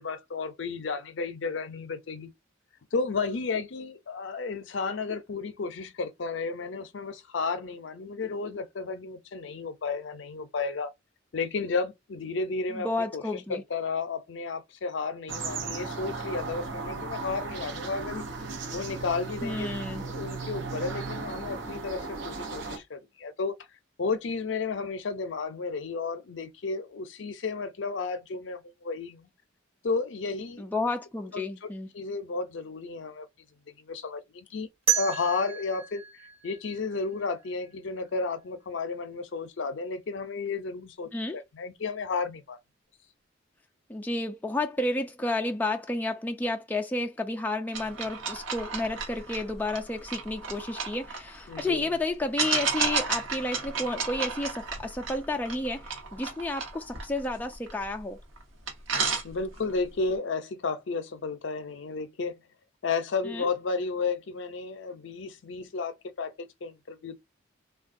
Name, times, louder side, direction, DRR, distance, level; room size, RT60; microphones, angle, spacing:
voice 1, 0.0-2.3 2.9-10.9 11.3-18.2 18.7-19.7 20.1-23.5 24.0-29.3 29.8-30.6 31.3-33.3 33.8-34.7 34.9-36.0 36.4-42.6 51.5-51.9 59.2-62.4 62.8-67.2, left 4 dB, 70° left, 0.5 m, -33 dB
voice 2, 12.7-13.6 19.4-20.0 30.6-31.9 41.1-41.4 43.9-58.2 63.2-63.5, left 2 dB, 10° left, 0.3 m, -31 dB
sound 1, 15.3-22.8, right 4 dB, 70° right, 0.7 m, -36 dB
sound 2, 34.9-37.7, right 8 dB, 35° right, 1.0 m, -32 dB
sound 3, 47.7-51.7 52.4-58.0 58.4-58.5 58.7-59.8, right 5 dB, 85° right, 1.1 m, -33 dB
3.4 x 2.2 x 2.5 m
head